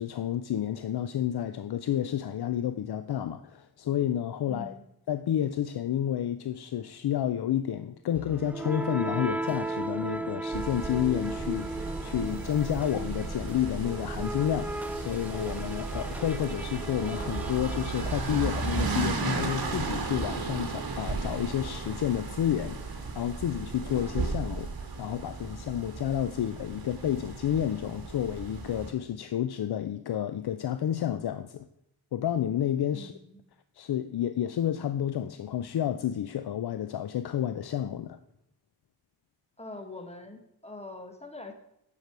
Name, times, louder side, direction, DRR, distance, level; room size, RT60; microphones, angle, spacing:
voice 1, 0.0-4.7 5.1-24.7 25.0-31.7 32.1-33.1 33.8-38.2, left 10 dB, 75° left, 0.5 m, -30 dB
voice 2, 4.5-4.8 32.9-33.4 39.6-41.5, left 2 dB, 15° left, 1.6 m, -43 dB
sound 1, 8.1-20.0, right 2 dB, 5° right, 0.4 m, -37 dB
sound 2, 10.5-28.9, right 3 dB, 65° right, 1.4 m, -35 dB
9.2 x 6.6 x 4.7 m
wide cardioid pair, 65°, 38 cm